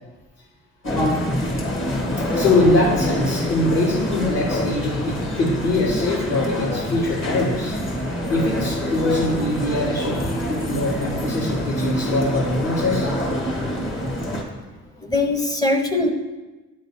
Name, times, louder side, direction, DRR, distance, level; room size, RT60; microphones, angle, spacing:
sound 1, 0.8-14.4, left 1 dB, 40° left, 1.4 m, -26 dB
voice 1, 2.3-7.7 8.3-13.1, left 2 dB, 65° left, -10 dB, 1.8 m, -22 dB
voice 2, 14.2-14.6 14.9-16.1, left 2 dB, 10° left, 4 dB, 0.7 m, -23 dB
8.7 x 3.1 x 4.1 m, 1.2 s
cardioid pair, 90°, 30 cm